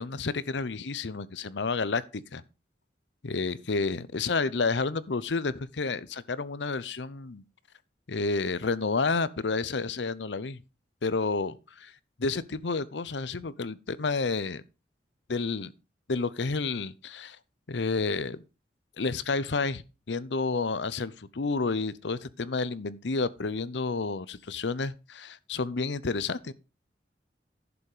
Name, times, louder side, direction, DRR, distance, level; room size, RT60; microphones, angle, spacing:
voice 1, 0.0-2.4 3.2-7.4 8.1-10.6 11.0-11.9 12.2-14.6 15.3-15.7 16.1-17.4 17.7-18.4 19.0-19.8 20.1-26.5, left 4 dB, 85° left, 0.8 m, -30 dB
11.0 x 7.0 x 4.9 m
head